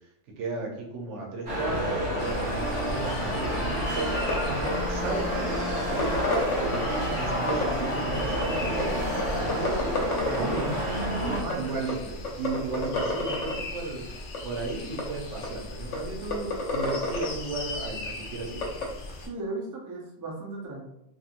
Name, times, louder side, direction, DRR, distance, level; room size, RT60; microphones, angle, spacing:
voice 1, 0.4-9.0 9.3-9.9 10.3-10.9 11.2-18.6, right 3 dB, 75° right, -1 dB, 1.1 m, -35 dB
sound 1, 1.5-11.4, equal, 60° right, 1.5 m, -29 dB
sound 2, 2.2-19.3, left 2 dB, 60° left, 0.6 m, -39 dB
sound 3, 4.1-4.3 4.7-4.8 5.1-6.9 7.5-7.6 8.3-8.8 9.2-9.3 9.5-10.8 11.0-11.1 11.3-11.5 11.9-12.0 12.2-13.5 14.3-14.4 15.0-15.1 15.4-15.5 15.9-16.0 16.3-17.3 18.6-18.8, left 3 dB, 85° left, 1.0 m, -29 dB
voice 2, 10.2-10.7 11.3-11.7 19.2-20.8, right 2 dB, 25° right, -3 dB, 0.4 m, -35 dB
2.9 x 2.6 x 2.4 m, 0.81 s
omnidirectional pair, 1.3 m